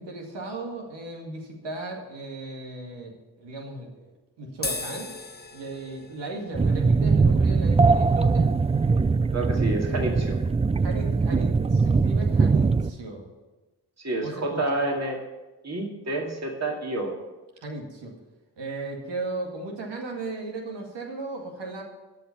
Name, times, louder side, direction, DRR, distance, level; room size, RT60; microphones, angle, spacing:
voice 1, 0.0-5.2 5.5-8.5 10.8-13.3 14.2-14.6 17.6-18.2 18.6-21.8, right 2 dB, 85° right, 1 dB, 2.1 m, -36 dB
sound 1, 4.5-11.1, left 3 dB, 25° left, 1.3 m, -41 dB
sound 2, 6.5-12.9, right 4 dB, 15° right, 0.4 m, -21 dB
voice 2, 9.3-10.4 14.0-15.2 15.6-17.1, right 2 dB, 40° right, 1 dB, 2.4 m, -29 dB
13.0 x 5.8 x 7.0 m, 1.1 s
supercardioid pair, 45°, 41 cm